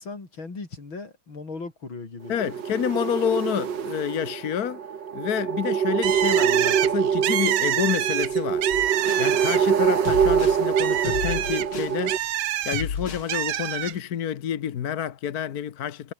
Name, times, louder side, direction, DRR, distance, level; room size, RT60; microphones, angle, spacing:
voice 1, 0.0-2.3, left 3 dB, 70° left, 5.4 m, -37 dB
voice 2, 2.3-4.8 5.1-8.7 9.2-12.3 12.6-16.1, left 9 dB, 55° left, 1.4 m, -28 dB
sound 1, 2.3-12.2, right 7 dB, 60° right, 2.3 m, -24 dB
Bird, 6.0-9.9 10.2-12.8 13.3-13.9, right 12 dB, 75° right, 1.7 m, -27 dB
sound 2, 8.7-9.3 10.1-10.6 11.1-12.0 12.7-13.3, left 6 dB, 90° left, 3.2 m, -32 dB
omnidirectional pair, 2.2 m